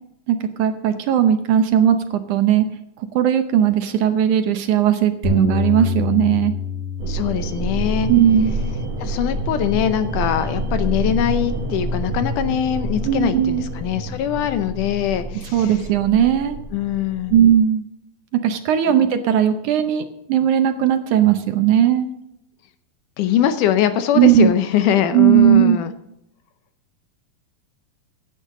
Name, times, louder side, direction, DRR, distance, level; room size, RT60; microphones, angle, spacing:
voice 1, 0.3-2.7 3.0-6.5 8.1-8.5 13.1-13.6 15.5-16.6 17.3-17.9 18.4-22.1 24.2-24.5 25.1-25.8, right 10 dB, 75° right, 7 dB, 2.0 m, -17 dB
Bass guitar, 5.2-9.7 10.3-11.5, left 4 dB, 20° right, 3.7 m, -28 dB
sound 1, 7.0-17.5, right 1 dB, 50° right, 2.5 m, -27 dB
voice 2, 7.1-8.1 9.0-15.8 16.7-17.4 23.2-25.9, left 10 dB, 75° left, 10 dB, 2.1 m, -22 dB
16.0 x 10.0 x 3.7 m, 0.82 s
omnidirectional pair, 4.0 m